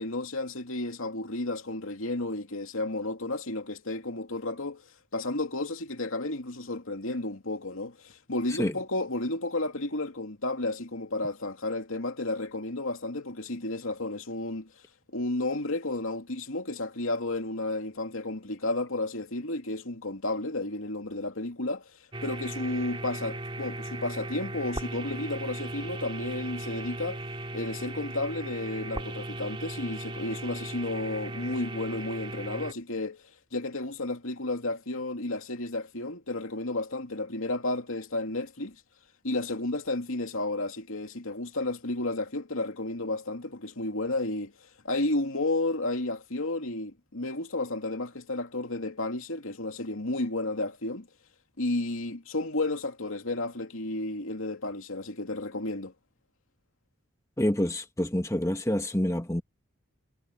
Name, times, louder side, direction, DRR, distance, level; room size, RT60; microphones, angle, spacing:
voice 1, 0.0-4.8 5.1-14.7 15.1-21.9 22.2-27.2 27.5-38.7 39.2-44.5 44.8-51.1 51.6-55.9, left 2 dB, 75° left, 2.7 m, -32 dB
sound 1, 22.1-32.7, right 1 dB, 25° right, 2.7 m, -37 dB
voice 2, 57.4-59.4, left 1 dB, 15° left, 1.4 m, -27 dB
head